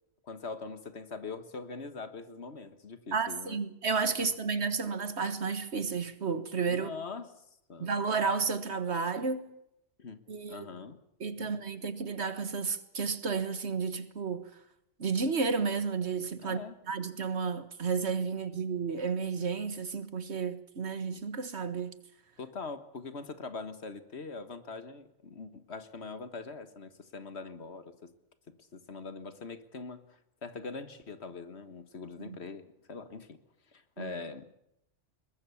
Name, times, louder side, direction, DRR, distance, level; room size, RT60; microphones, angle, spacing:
voice 1, 0.2-3.6 4.2-4.3 6.7-7.3 7.7-7.9 10.0-10.2 10.5-11.0 11.4-11.6 16.4-16.7 22.4-28.1 28.7-33.4 33.7-34.5, left 4 dB, 60° left, 1.7 m, -42 dB
voice 2, 3.1-6.9 7.8-9.4 10.3-10.7 11.2-14.5 15.0-22.0 32.2-32.4 34.0-34.1, right 5 dB, 60° right, 1.7 m, -32 dB
22.5 x 20.5 x 7.1 m
omnidirectional pair, 1.3 m